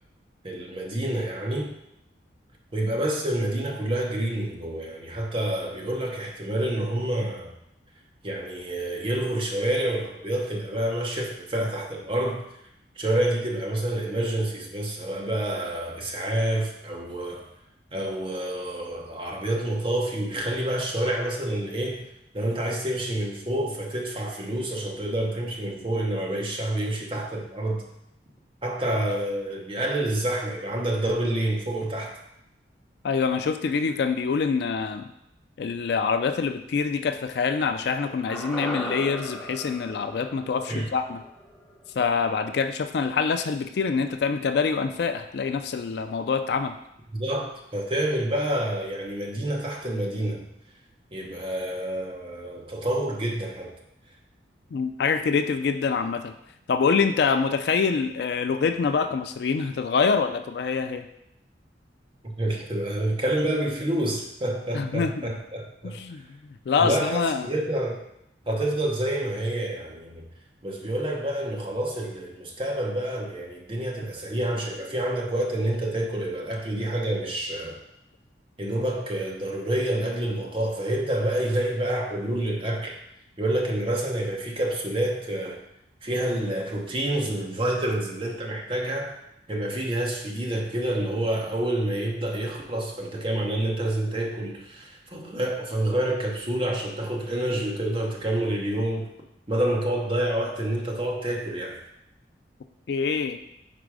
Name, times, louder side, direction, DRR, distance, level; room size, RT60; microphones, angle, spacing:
voice 1, 0.4-1.7 2.7-7.5 8.2-12.4 13.0-17.4 17.9-22.1 22.3-27.8 28.6-32.2 40.7-40.9 47.1-50.4 51.1-53.7 62.2-66.0 66.8-68.0 68.5-70.3 70.6-77.8 78.6-83.0 83.4-85.6 86.0-89.2 89.5-99.1 99.5-101.8, right 1 dB, 30° right, 0 dB, 0.9 m, -28 dB
voice 2, 33.0-35.1 35.6-41.2 42.0-46.8 54.7-56.3 56.7-61.0 64.7-65.3 65.8-66.2 66.7-67.5 102.9-103.4, left 5 dB, 60° left, 8 dB, 0.3 m, -25 dB
sound 1, 38.3-42.6 42.8-42.9, equal, 5° left, 0.8 m, -37 dB
5.0 x 4.3 x 4.7 m, 0.81 s
head